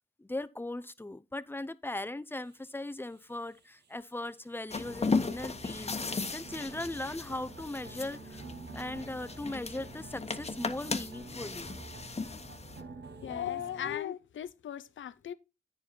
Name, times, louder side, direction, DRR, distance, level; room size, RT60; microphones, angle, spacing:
voice 1, 0.2-8.4 8.7-12.0 12.3-12.6, left 2 dB, 10° left, 0.7 m, -39 dB
sound 1, 2.3-14.0, right 4 dB, 60° right, 1.2 m, -49 dB
sound 2, 4.7-12.8, left 4 dB, 30° left, 1.2 m, -36 dB
voice 2, 13.2-15.3, left 10 dB, 70° left, 0.7 m, -37 dB
9.5 x 4.8 x 4.5 m
cardioid pair, 55°, 20 cm